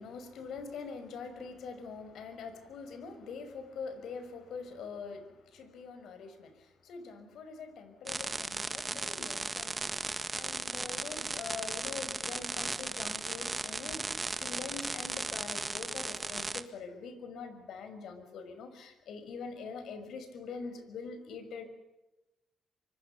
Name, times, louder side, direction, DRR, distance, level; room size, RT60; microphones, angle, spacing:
voice 1, 0.0-10.0 10.3-21.7, left 5 dB, 70° left, 9 dB, 6.0 m, -44 dB
sound 1, 8.1-16.6, right 3 dB, 20° right, 1.8 m, -36 dB
26.0 x 25.5 x 7.0 m, 1.0 s
cardioid pair, 90°, 0 cm